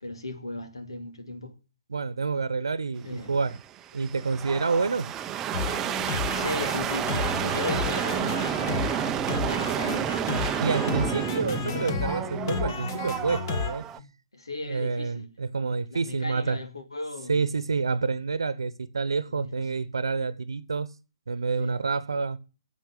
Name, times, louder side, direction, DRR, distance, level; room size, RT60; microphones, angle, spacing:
voice 1, 0.0-1.6 3.0-3.4 6.3-8.8 9.3-10.0 10.5-10.9 14.0-15.3 15.9-17.5 19.3-19.7 21.6-21.8, left 2 dB, 80° left, 2.2 m, -37 dB
voice 2, 1.9-3.6 3.9-5.1 10.6-13.8 14.6-16.6 17.3-20.9 21.3-22.4, right 4 dB, 75° right, 1.0 m, -28 dB
sound 1, 3.2-14.0, right 10 dB, 20° right, 0.6 m, -30 dB
sound 2, 5.5-13.7, left 6 dB, 45° left, 1.8 m, -32 dB
9.7 x 8.2 x 8.3 m
figure-of-eight pair, 130°, 3 cm